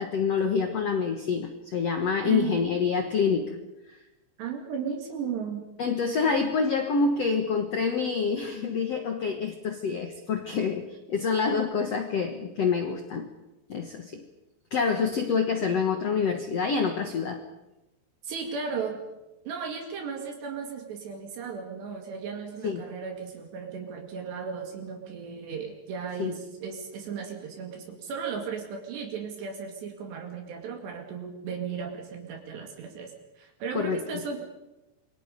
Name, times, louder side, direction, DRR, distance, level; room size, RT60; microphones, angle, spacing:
voice 1, 0.0-3.6 5.8-13.3 13.7-14.3 14.7-17.4 22.6-22.8 26.2-26.3 33.7-34.0, left 5 dB, 70° left, 6 dB, 1.5 m, -27 dB
voice 2, 2.2-2.6 4.4-5.6 18.2-19.0 19.5-34.4, right 6 dB, 70° right, 2 dB, 4.3 m, -35 dB
27.5 x 23.5 x 5.3 m, 0.98 s
omnidirectional pair, 5.1 m